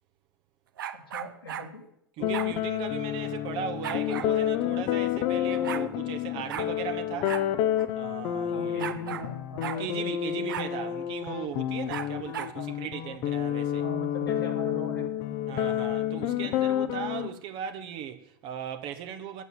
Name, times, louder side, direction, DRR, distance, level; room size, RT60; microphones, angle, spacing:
sound 1, 0.8-1.7 2.3-2.5 3.8-4.3 5.2-5.3 5.5-5.9 6.5-6.7 7.2-7.5 7.8-7.9 8.8-9.3 9.6-9.8 10.5-10.7 11.9-12.6, right 10 dB, 65° right, 0.8 m, -36 dB
voice 1, 0.9-1.8 8.4-10.9 12.5-12.7 13.8-15.4, left 1 dB, 85° left, 2.5 m, -41 dB
sound 2, 2.2-17.3, left 11 dB, 45° left, 0.8 m, -29 dB
voice 2, 2.2-7.3 7.9-8.9 9.6-13.8 15.5-19.4, right 9 dB, 45° right, 1.1 m, -37 dB
9.4 x 8.3 x 9.0 m
figure-of-eight pair, 85°, 12 cm